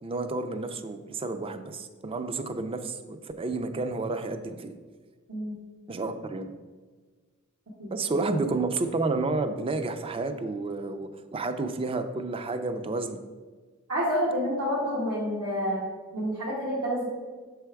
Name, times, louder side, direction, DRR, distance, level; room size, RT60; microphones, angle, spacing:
voice 1, 0.0-4.7 5.9-6.5 7.9-13.2, right 3 dB, 25° right, 8 dB, 0.3 m, -30 dB
voice 2, 13.9-15.8 16.1-17.1, equal, 90° right, -9 dB, 1.5 m, -28 dB
6.8 x 3.4 x 4.6 m, 1.4 s
head